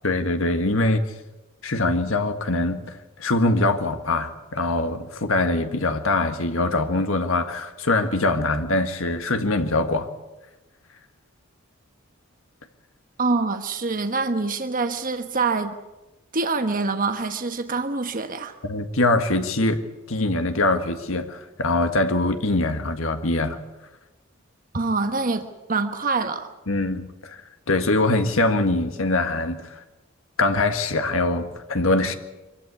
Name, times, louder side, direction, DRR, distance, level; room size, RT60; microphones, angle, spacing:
voice 1, 0.0-1.0 1.6-10.1 18.6-23.6 26.7-27.4 27.7-29.8 30.4-32.1, left 2 dB, 70° left, 7 dB, 1.7 m, -23 dB
voice 2, 13.2-15.8 16.3-18.5 24.7-26.5, right 3 dB, 40° right, 7 dB, 1.3 m, -25 dB
24.5 x 15.5 x 9.6 m, 1.1 s
head